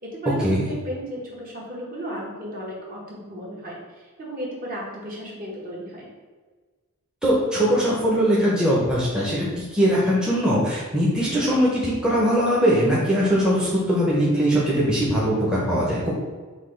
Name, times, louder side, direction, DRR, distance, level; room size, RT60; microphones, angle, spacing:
voice 1, 0.0-6.1, equal, 40° right, -4 dB, 1.1 m, -35 dB
voice 2, 7.2-16.1, equal, 5° right, -7 dB, 0.6 m, -21 dB
5.8 x 2.3 x 3.2 m, 1.4 s
head